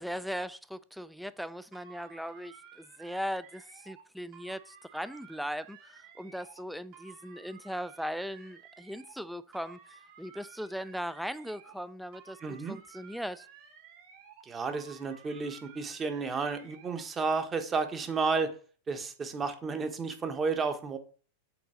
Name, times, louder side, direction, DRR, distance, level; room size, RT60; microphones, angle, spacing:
voice 1, 0.0-13.5, equal, ahead, 0.4 m, -39 dB
sound 1, 1.7-4.0 4.3-6.6 6.9-9.2 9.5-11.9 12.1-14.5 14.7-17.1, right 7 dB, 55° right, 2.3 m, -54 dB
voice 2, 12.4-12.8 14.4-18.5 18.9-21.0, right 4 dB, 20° right, 1.2 m, -32 dB
7.1 x 4.1 x 5.0 m
hypercardioid pair, 125°, 0 cm